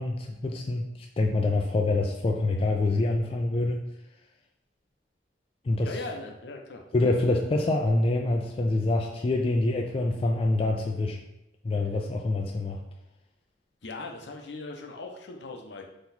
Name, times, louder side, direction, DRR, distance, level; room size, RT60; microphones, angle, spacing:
voice 1, 0.0-3.8 5.6-5.9 6.9-11.2 11.6-12.8, left 2 dB, 30° left, 2 dB, 0.3 m, -26 dB
voice 2, 5.8-6.8 13.8-15.9, left 3 dB, 75° left, 2 dB, 0.6 m, -39 dB
3.9 x 2.9 x 4.1 m, 0.88 s
head